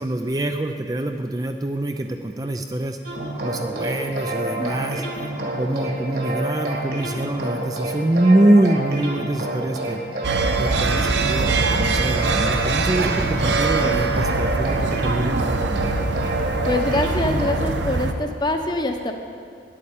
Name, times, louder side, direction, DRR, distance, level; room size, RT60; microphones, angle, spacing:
voice 1, 0.0-3.0 3.4-5.0 5.6-10.0 10.6-15.9, right 1 dB, 20° right, 5 dB, 0.4 m, -24 dB
sound 1, 3.0-17.6, right 1 dB, 55° right, 2.0 m, -29 dB
sound 2, 10.2-18.1, right 3 dB, 85° right, 0.8 m, -23 dB
voice 2, 16.7-19.1, left 2 dB, 25° left, 5 dB, 0.9 m, -24 dB
10.5 x 8.6 x 8.5 m, 2.2 s
head